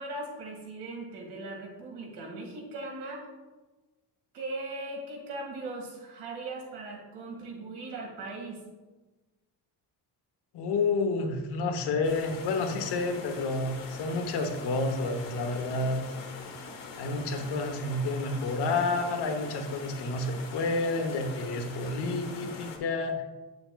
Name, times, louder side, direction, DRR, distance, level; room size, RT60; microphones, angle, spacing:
voice 1, 0.0-3.3 4.3-8.6, right 2 dB, 80° right, -1 dB, 2.0 m, -39 dB
voice 2, 10.5-16.0 17.0-23.2, left 3 dB, 90° left, 5 dB, 1.0 m, -30 dB
sound 1, 12.0-22.8, left 4 dB, 55° left, 1.1 m, -43 dB
7.9 x 6.9 x 2.3 m, 1.2 s
cardioid pair, 170°, 39 cm